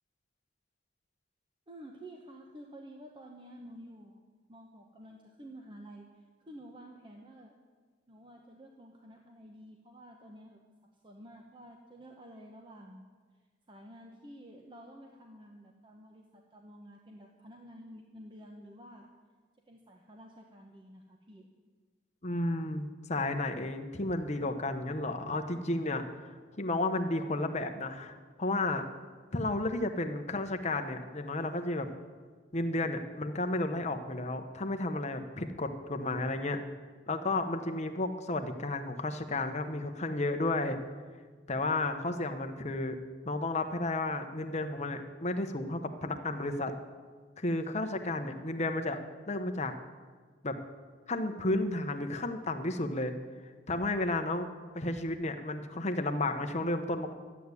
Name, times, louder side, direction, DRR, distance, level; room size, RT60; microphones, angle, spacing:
voice 1, 1.7-4.2 4.5-7.5 8.1-10.6 11.0-13.1 13.7-19.1 19.7-21.5, equal, 25° right, 1 dB, 1.1 m, -51 dB
voice 2, 22.2-26.1 26.6-28.1 28.4-28.8 29.3-31.9 32.5-36.6 37.1-40.8 41.5-43.0 43.2-46.7 47.4-49.0 49.3-49.7 50.4-50.6 51.1-53.1 53.7-54.5 54.7-57.1, left 2 dB, 40° left, 6 dB, 1.0 m, -32 dB
12.5 x 8.3 x 9.7 m, 1.5 s
head